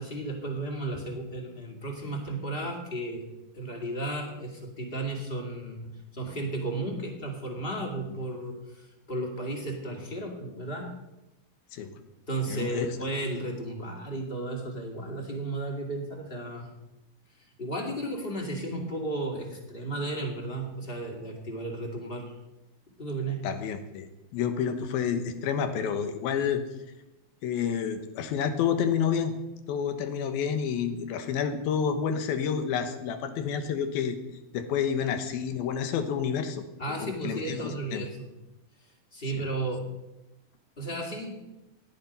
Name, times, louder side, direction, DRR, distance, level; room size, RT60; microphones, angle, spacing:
voice 1, 0.0-3.2 3.5-10.9 12.3-16.7 17.6-22.3 23.0-23.5 36.8-38.3 39.1-39.8 40.8-41.4, right 2 dB, 20° left, 1 dB, 1.9 m, -34 dB
voice 2, 12.5-12.9 23.4-26.6 27.4-29.3 29.7-34.2 34.5-36.6 36.9-38.0 39.3-39.4, left 7 dB, 75° left, 8 dB, 3.0 m, -29 dB
17.5 x 10.5 x 5.4 m, 0.98 s
omnidirectional pair, 4.4 m